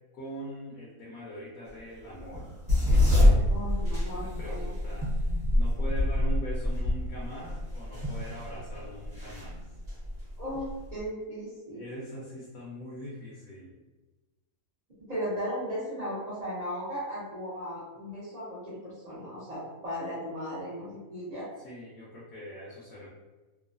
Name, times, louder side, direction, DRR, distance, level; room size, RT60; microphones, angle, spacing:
voice 1, 0.1-2.5 2.8-3.6 3.9-9.6 11.7-13.8 21.6-23.1, equal, 65° left, -6 dB, 1.0 m, -42 dB
sound 1, 2.2-11.0, left 1 dB, 35° right, 0.8 m, -26 dB
voice 2, 3.5-4.7 10.4-11.8 15.0-21.5, equal, 50° right, -10 dB, 0.4 m, -36 dB
3.0 x 2.1 x 2.5 m, 1.2 s
omnidirectional pair, 1.7 m